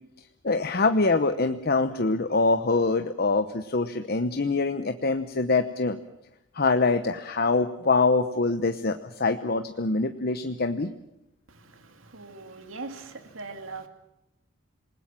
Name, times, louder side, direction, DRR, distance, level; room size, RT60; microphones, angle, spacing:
voice 1, 0.4-6.0 6.5-10.9, left 3 dB, 50° left, 9 dB, 0.9 m, -24 dB
voice 2, 11.5-13.9, right 3 dB, 80° right, 7 dB, 2.6 m, -41 dB
27.5 x 20.0 x 7.5 m, 0.84 s
head